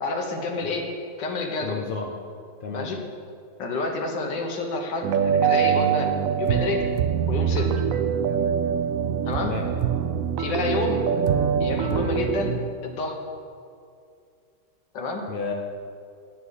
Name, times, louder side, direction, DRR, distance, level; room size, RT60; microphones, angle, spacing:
voice 1, 0.0-0.9 1.2-1.8 2.7-3.0 3.6-6.1 6.4-6.9 7.3-7.7 9.3-9.5 10.4-11.0 11.6-12.5 12.8-13.2 14.9-15.2, left 3 dB, 85° left, 2 dB, 1.8 m, -29 dB
voice 2, 1.6-2.1 2.6-2.9 9.4-9.7 15.3-15.5, left 5 dB, 55° left, 1 dB, 0.5 m, -31 dB
sound 1, 5.0-12.6, right 7 dB, 65° right, 0.8 m, -24 dB
9.4 x 7.4 x 6.4 m, 2.4 s
omnidirectional pair, 1.9 m